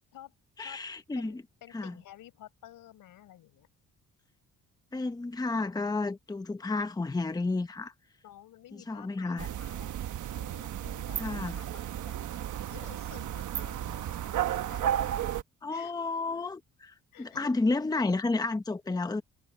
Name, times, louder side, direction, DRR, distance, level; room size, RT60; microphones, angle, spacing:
voice 1, 0.6-1.4 1.7-1.9 4.9-7.9 8.9-9.4 11.2-11.6 15.6-19.2, left 3 dB, 10° left, 0.8 m, -31 dB
voice 2, 1.1-3.7 8.2-9.9 10.2-12.1 12.6-15.1 15.7-16.2 17.1-17.5, left 12 dB, 85° left, 5.0 m, -52 dB
sound 1, 9.4-15.4, right 11 dB, 65° right, 1.2 m, -33 dB
cardioid pair, 135°, 33 cm